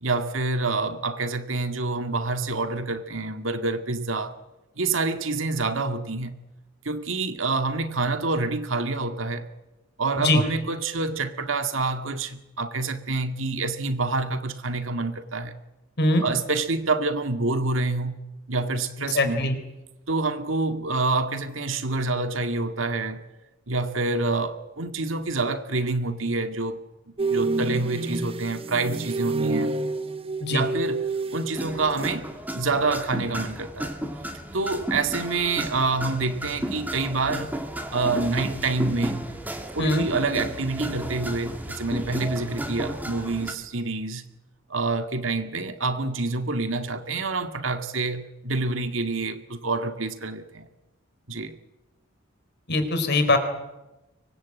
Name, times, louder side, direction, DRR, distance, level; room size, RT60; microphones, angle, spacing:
voice 1, 0.0-4.4 4.8-6.4 6.8-9.5 10.0-15.5 16.2-18.2 18.5-19.5 20.1-23.2 23.7-26.8 27.3-29.8 30.5-31.1 31.3-32.3 32.5-34.0 34.5-37.5 37.9-39.2 39.7-44.2 44.7-50.7 51.3-51.6, right 3 dB, 70° right, 2.0 m, -27 dB
voice 2, 19.1-19.6 30.4-30.7 39.8-40.1 52.7-53.4, left 2 dB, 55° left, 4.0 m, -21 dB
sound 1, 27.2-32.3 32.6-32.9, right 3 dB, 30° right, 1.1 m, -29 dB
sound 2, 31.5-43.5, right 1 dB, 10° right, 2.6 m, -33 dB
24.5 x 21.0 x 8.6 m
head